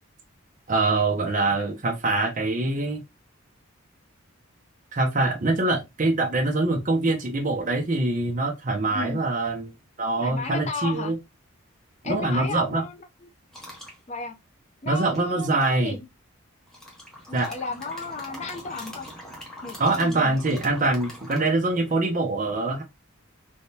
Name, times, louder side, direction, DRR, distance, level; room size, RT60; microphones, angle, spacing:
voice 1, 0.7-3.0 4.9-11.2 12.0-12.8 14.9-15.9 17.3-17.5 19.8-22.8, right 2 dB, 35° right, 0.5 m, -24 dB
voice 2, 10.2-11.1 12.0-13.0 14.1-14.3 14.8-16.1 17.3-19.1 19.6-20.4, left 4 dB, 30° left, 0.4 m, -34 dB
sound 1, 13.5-14.0 15.1-15.9 16.7-22.0, left 1 dB, ahead, 0.7 m, -43 dB
3.4 x 2.2 x 2.6 m
head